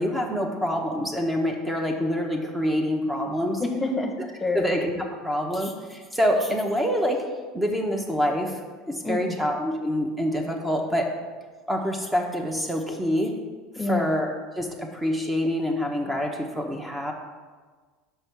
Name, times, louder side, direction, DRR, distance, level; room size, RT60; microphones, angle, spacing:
voice 1, 0.0-3.6 4.5-7.2 7.5-8.6 8.9-11.1 11.7-13.3 13.9-14.3 14.5-17.1, equal, 10° right, 1 dB, 1.0 m, -26 dB
voice 2, 3.6-4.1 4.4-4.6 9.0-9.4 13.8-14.1, left 3 dB, 15° left, 3 dB, 1.0 m, -27 dB
5.3 x 4.6 x 6.2 m, 1.4 s
hypercardioid pair, 90°, 0 cm